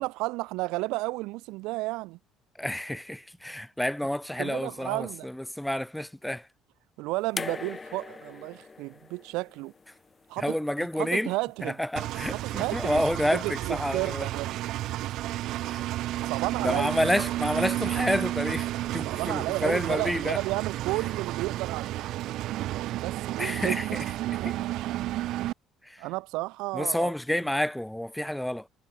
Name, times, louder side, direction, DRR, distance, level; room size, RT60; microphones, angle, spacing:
voice 1, 0.0-2.2 4.4-5.3 7.0-9.7 10.3-10.6 11.0-11.8 12.3-13.0 13.3-14.5 16.2-17.0 19.0-22.1 22.7-24.9 26.0-27.1, right 22 dB, 80° right, 1.0 m, -32 dB
voice 2, 2.6-6.5 10.4-11.3 11.8-14.3 15.6-15.9 16.6-20.4 23.4-23.9 24.4-24.6 25.8-26.0 26.7-28.7, left 1 dB, 5° left, 2.1 m, -29 dB
sound 1, 7.4-10.5 11.7-11.8, left 4 dB, 20° left, 2.9 m, -40 dB
Engine, 12.0-25.5, right 15 dB, 65° right, 3.6 m, -32 dB
cardioid pair, 130°, 0 cm